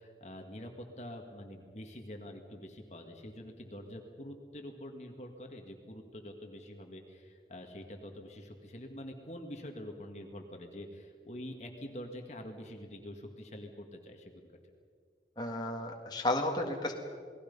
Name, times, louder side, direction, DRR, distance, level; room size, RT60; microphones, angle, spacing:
voice 1, 0.0-14.5, equal, 40° left, 3 dB, 1.9 m, -46 dB
voice 2, 15.4-16.9, left 1 dB, 25° left, 1 dB, 2.0 m, -32 dB
28.5 x 20.0 x 5.5 m, 2.1 s
head